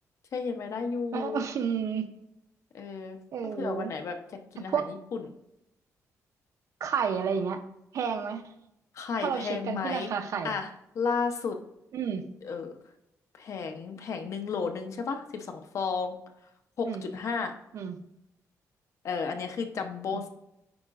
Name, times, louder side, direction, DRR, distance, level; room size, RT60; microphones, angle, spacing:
voice 1, 0.3-1.4 2.7-3.2 3.6-4.2 4.5-5.2 8.9-10.1 10.4-10.7 10.9-11.6 12.4-12.7 13.4-16.2 16.8-17.5 19.0-20.3, left 5 dB, 55° left, 6 dB, 0.8 m, -32 dB
voice 2, 1.1-2.1 3.3-3.9 4.6-4.9 6.8-7.6 7.9-8.4 9.2-10.5 11.9-12.3 16.8-17.1 17.7-18.0 20.1-20.3, right 7 dB, 60° right, 8 dB, 0.7 m, -31 dB
8.6 x 5.0 x 2.5 m, 0.84 s
cardioid pair, 145°, 6 cm